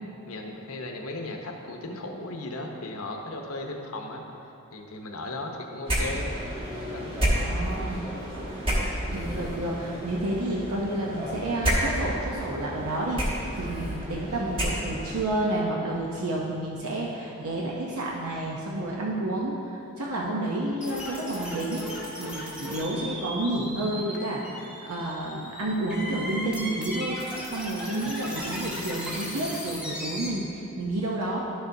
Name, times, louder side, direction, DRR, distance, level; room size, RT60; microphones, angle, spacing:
voice 1, 0.3-4.2 4.7-6.2 6.9-7.1 14.2-14.6, left 2 dB, 80° left, 2 dB, 0.8 m, -36 dB
sound 1, 5.8-15.2, equal, 25° right, 1.2 m, -30 dB
voice 2, 7.3-8.0 9.1-21.9 22.2-27.2 27.5-31.4, right 1 dB, 85° right, -3 dB, 0.7 m, -30 dB
sound 2, 20.8-30.3, equal, 5° right, 0.8 m, -37 dB
11.0 x 6.7 x 2.7 m, 2.9 s
head